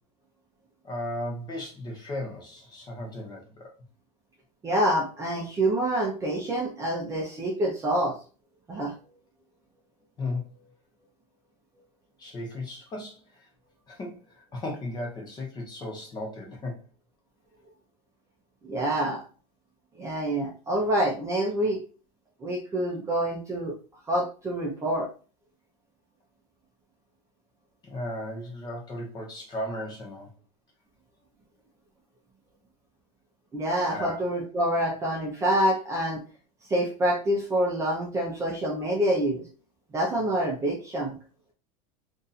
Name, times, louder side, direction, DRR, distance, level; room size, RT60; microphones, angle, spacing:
voice 1, 0.8-3.7 10.2-10.5 12.2-13.5 13.9-16.9 27.8-30.3 33.9-34.2, left 1 dB, 20° left, 0 dB, 1.0 m, -36 dB
voice 2, 4.6-8.1 8.7-8.9 18.6-19.2 20.0-21.8 22.4-23.7 24.1-25.1 33.5-36.2 36.7-39.4 39.9-41.1, right 1 dB, 15° right, -2 dB, 0.7 m, -26 dB
2.7 x 2.6 x 4.1 m, 0.37 s
supercardioid pair, 145°, 19 cm